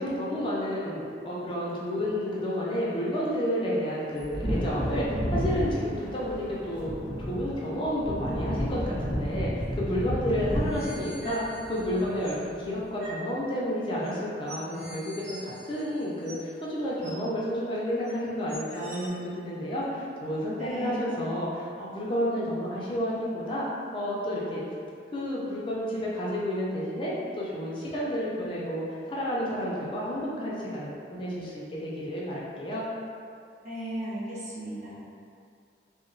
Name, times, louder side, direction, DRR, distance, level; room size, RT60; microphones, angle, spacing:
voice 1, 0.0-23.7 23.9-24.6 25.1-32.9, equal, 30° left, -6 dB, 0.4 m, -31 dB
Wind / Thunder, 4.2-12.4 12.7-12.8, equal, 10° right, 1.1 m, -31 dB
sound 1, 10.6-12.4 13.0-13.2 14.0-14.1 14.5-16.6 17.0-17.1 18.0-18.1 18.5-19.1, right 1 dB, 85° right, 0.6 m, -45 dB
voice 2, 20.6-21.1 33.6-35.0, right 1 dB, 40° right, -8 dB, 0.6 m, -35 dB
2.8 x 2.0 x 2.5 m, 2.4 s
head